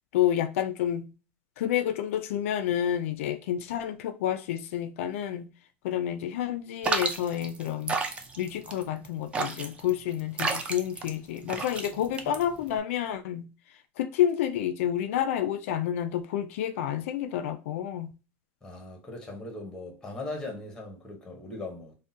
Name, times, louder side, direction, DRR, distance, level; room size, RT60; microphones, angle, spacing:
voice 1, 0.1-1.1 1.6-5.5 5.8-8.0 8.4-13.5 14.0-18.1, left 10 dB, 85° left, 0.4 m, -29 dB
sound 1, 6.8-12.8, right 4 dB, 15° right, 0.3 m, -32 dB
voice 2, 18.6-21.9, left 2 dB, 10° left, 0.8 m, -39 dB
3.6 x 2.1 x 2.6 m
supercardioid pair, 155°, 7 cm